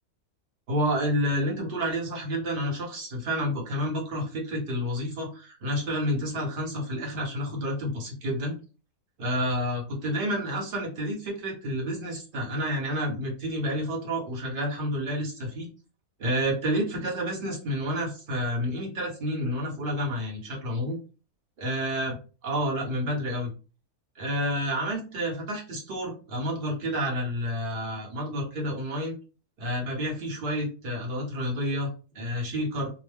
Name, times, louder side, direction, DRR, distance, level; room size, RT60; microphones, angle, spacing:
voice 1, 0.7-8.5 9.2-15.7 16.2-21.0 21.6-22.2 22.4-23.5 24.2-29.2 29.6-32.9, equal, 45° right, 0 dB, 0.9 m, -29 dB
2.6 x 2.0 x 3.4 m, 0.35 s
omnidirectional pair, 1.6 m